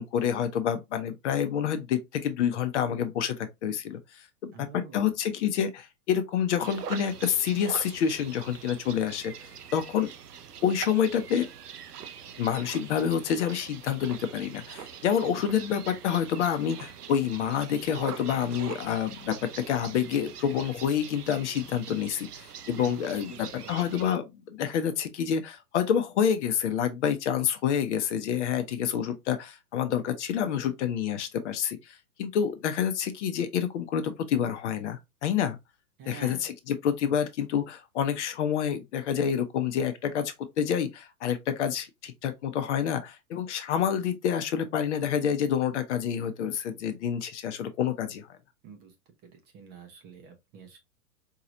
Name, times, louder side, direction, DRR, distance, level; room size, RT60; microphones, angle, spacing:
voice 1, 0.0-4.7 4.9-10.1 10.6-11.5 12.4-35.6 36.1-48.3, left 8 dB, 50° left, 0.8 m, -28 dB
voice 2, 4.5-5.1 22.8-24.0 36.0-36.5 48.6-48.9 49.2-50.8, right 6 dB, 20° right, 0.7 m, -47 dB
sound 1, 6.6-24.2, right 8 dB, 75° right, 0.8 m, -43 dB
4.7 x 2.9 x 2.5 m
hypercardioid pair, 115°, 46 cm